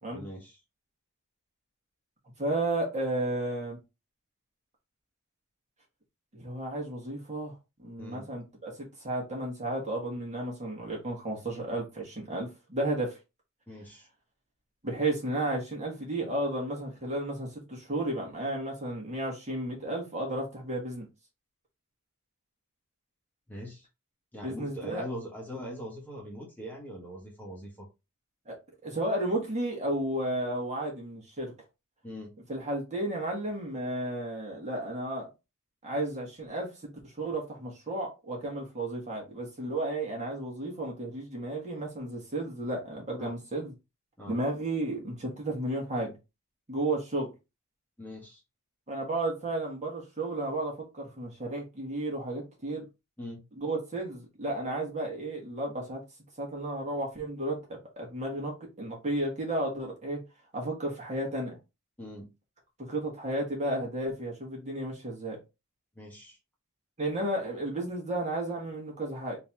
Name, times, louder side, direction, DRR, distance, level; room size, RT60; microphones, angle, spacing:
voice 1, 0.1-0.6 8.0-8.3 13.7-14.1 23.5-23.9 24.3-27.9 32.0-32.3 43.2-43.3 44.2-44.4 48.0-48.4 53.2-53.4 62.0-62.3 66.0-66.4, equal, 10° left, 1.2 m, -42 dB
voice 2, 2.4-3.8 6.3-7.5 7.8-13.2 14.8-21.1 24.4-25.0 28.5-28.6 28.8-31.5 32.5-35.3 35.8-43.7 44.3-46.2 46.7-47.3 48.9-52.8 53.5-56.0 56.4-60.2 60.5-61.6 62.9-65.4 67.0-69.4, right 1 dB, 35° right, 1.6 m, -33 dB
3.8 x 2.9 x 3.5 m
head